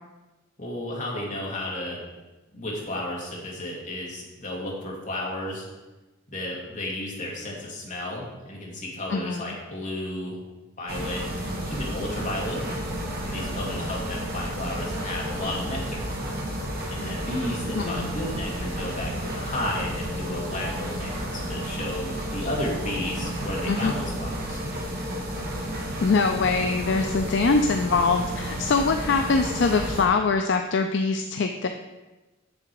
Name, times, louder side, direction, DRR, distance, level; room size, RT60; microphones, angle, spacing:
voice 1, 0.6-2.0 2.5-5.6 6.3-10.4 10.8-12.6 13.2-16.1 16.9-24.6, left 1 dB, 40° left, -3 dB, 2.0 m, -33 dB
voice 2, 9.1-9.5 17.8-18.1 23.7-23.9 26.0-31.7, left 4 dB, 60° left, 6 dB, 0.4 m, -23 dB
sound 1, 10.9-30.0, equal, 50° right, 1.6 m, -32 dB
7.3 x 6.8 x 4.7 m, 1.1 s
head